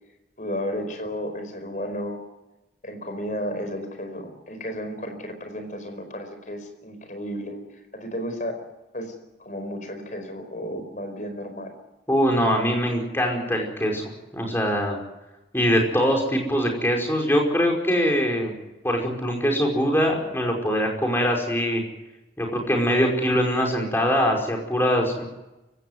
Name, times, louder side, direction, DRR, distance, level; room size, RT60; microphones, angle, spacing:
voice 1, 0.4-2.2 2.8-7.6 7.9-8.6 8.9-9.1 9.4-11.7, equal, 45° left, 7 dB, 4.8 m, -33 dB
voice 2, 12.1-14.0 14.3-15.0 15.5-18.6 18.8-21.8 22.4-25.3, equal, 15° left, 1 dB, 5.3 m, -22 dB
24.5 x 16.5 x 9.5 m, 1.0 s
head